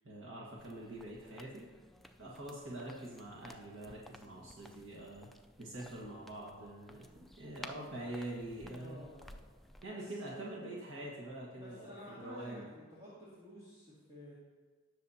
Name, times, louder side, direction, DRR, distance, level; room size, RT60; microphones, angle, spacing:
voice 1, 0.0-1.7 2.2-5.3 5.6-9.0 9.8-12.6, right 1 dB, 75° right, -4 dB, 1.5 m, -45 dB
sound 1, 0.6-9.8, left 1 dB, ahead, 0.3 m, -56 dB
voice 2, 8.7-9.4 9.9-10.6 11.6-12.6 12.9-14.3, equal, 20° right, -9 dB, 2.1 m, -52 dB
18.0 x 6.5 x 2.8 m, 1.4 s
head